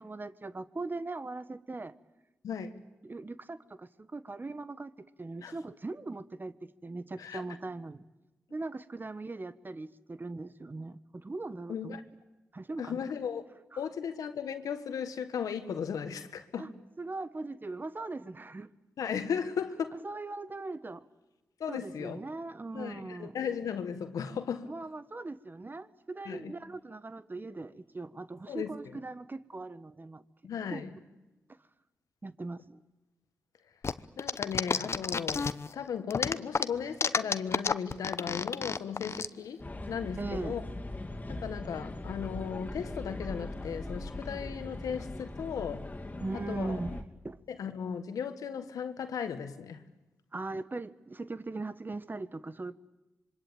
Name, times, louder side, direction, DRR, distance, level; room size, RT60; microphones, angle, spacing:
voice 1, 0.0-1.9 3.0-6.5 6.8-8.0 8.5-12.0 12.5-13.0 13.7-13.8 16.6-16.7 17.0-18.7 20.0-21.1 21.7-23.4 24.7-30.2 30.7-30.8 32.2-32.8 40.2-40.5 46.2-47.4 50.3-52.7, right 3 dB, 35° right, 1.3 m, -40 dB
voice 2, 11.7-12.0 12.8-13.4 13.8-16.7 19.0-20.0 21.6-22.2 22.7-24.7 26.3-26.5 28.5-29.0 30.4-30.9 34.2-40.6 41.3-45.9 46.3-46.8 47.5-49.8, left 7 dB, 75° left, 1.7 m, -36 dB
sound 1, 33.8-35.7 36.1-39.3, left 5 dB, 50° left, 1.0 m, -30 dB
sound 2, 39.6-47.0, left 2 dB, 25° left, 3.1 m, -40 dB
26.0 x 23.5 x 8.9 m
supercardioid pair, 40°, 6 cm